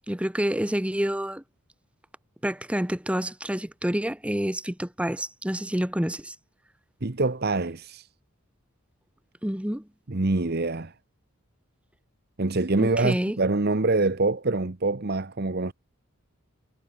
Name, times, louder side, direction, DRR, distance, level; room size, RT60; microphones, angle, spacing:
voice 1, 0.1-1.4 2.4-6.3 9.4-9.9 12.8-13.4, equal, 5° right, 1.0 m, -28 dB
voice 2, 7.0-8.1 10.1-10.9 12.4-15.7, right 2 dB, 45° right, 1.0 m, -25 dB
head